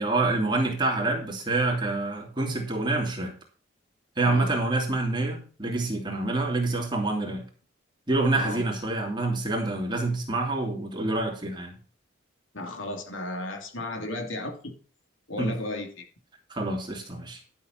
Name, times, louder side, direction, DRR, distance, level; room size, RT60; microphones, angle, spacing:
voice 1, 0.0-3.3 4.2-7.4 8.1-11.8 15.4-15.6 16.5-17.4, right 2 dB, 25° right, 0 dB, 3.0 m, -27 dB
voice 2, 8.3-8.6 12.5-14.7 15.3-16.1, left 2 dB, 80° left, 3 dB, 2.8 m, -34 dB
12.0 x 7.2 x 4.5 m, 0.40 s
head